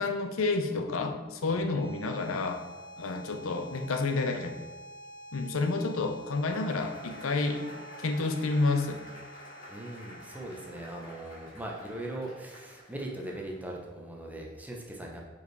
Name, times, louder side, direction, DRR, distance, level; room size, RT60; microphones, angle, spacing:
voice 1, 0.0-2.6 3.0-4.5 5.3-7.7 8.0-9.0, left 3 dB, 80° left, 5 dB, 0.6 m, -29 dB
sound 1, 1.5-12.5, equal, 45° right, 1.4 m, -49 dB
Cheering / Applause / Crowd, 6.5-13.7, equal, 40° left, 1.9 m, -50 dB
voice 2, 9.7-15.2, right 1 dB, 10° right, -1 dB, 0.8 m, -40 dB
5.5 x 4.7 x 4.6 m, 1.3 s
head